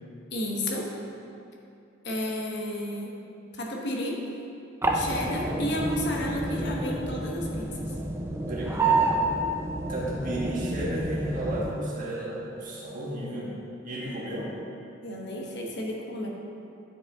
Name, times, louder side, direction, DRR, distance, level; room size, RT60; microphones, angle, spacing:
voice 1, 0.3-0.9 2.0-3.2 3.5-4.3 4.9-7.7 15.0-16.3, left 1 dB, 60° left, -1 dB, 1.0 m, -32 dB
sound 1, 4.8-11.7, right 2 dB, 15° right, 0.4 m, -29 dB
voice 2, 8.5-9.1 9.9-13.5 13.8-14.5, right 1 dB, 45° right, -5 dB, 1.5 m, -33 dB
9.8 x 5.1 x 3.5 m, 2.7 s
head